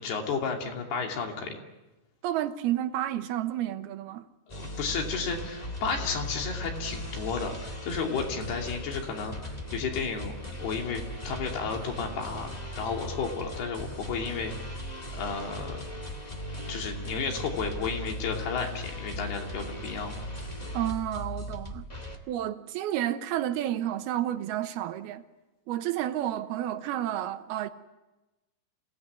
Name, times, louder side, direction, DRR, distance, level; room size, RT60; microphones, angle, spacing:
voice 1, 0.0-1.6 4.5-12.5 12.8-14.5 15.2-15.8 16.7-20.1, left 5 dB, 75° left, 4.8 m, -32 dB
voice 2, 2.2-4.3 20.7-21.9 22.3-25.2 25.7-27.7, right 12 dB, 75° right, 2.9 m, -30 dB
sound 1, 4.5-22.2, left 1 dB, 55° left, 0.4 m, -38 dB
28.0 x 17.5 x 9.7 m
omnidirectional pair, 4.7 m